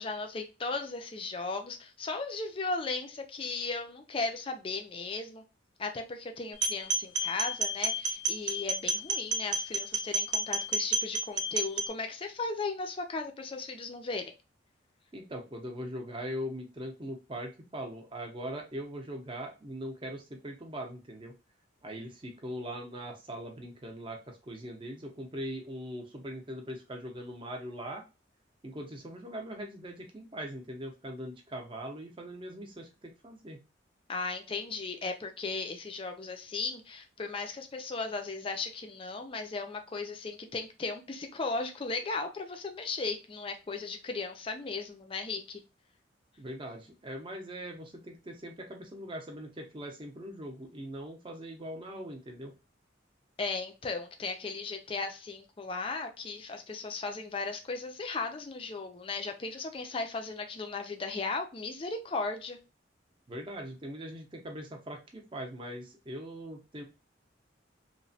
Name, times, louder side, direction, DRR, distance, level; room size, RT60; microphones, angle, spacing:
voice 1, 0.0-5.4 5.8-14.3 34.1-45.6 53.4-62.6, left 3 dB, 30° left, 6 dB, 0.4 m, -36 dB
sound 1, 6.5-11.9, right 2 dB, 75° right, 0.5 m, -31 dB
voice 2, 15.1-21.3 21.8-28.0 28.6-33.6 46.4-52.5 63.3-66.8, equal, 25° right, 3 dB, 0.6 m, -41 dB
3.0 x 2.1 x 2.6 m, 0.29 s
head